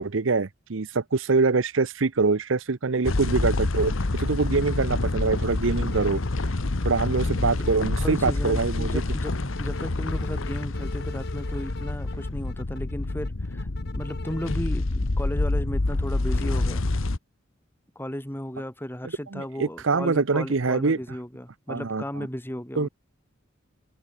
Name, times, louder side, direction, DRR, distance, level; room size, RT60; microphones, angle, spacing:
voice 1, 0.0-6.2 6.8-9.0 19.3-21.0 21.7-22.3 22.8-22.9, right 4 dB, 65° right, 0.8 m, -24 dB
sound 1, 3.0-17.2, left 2 dB, 75° left, 1.1 m, -27 dB
sound 2, 4.2-4.3 4.6-6.4 6.8-7.7 8.1-14.6, left 3 dB, 55° left, 3.9 m, -45 dB
voice 2, 7.2-16.8 18.0-22.9, equal, 10° left, 2.4 m, -35 dB
head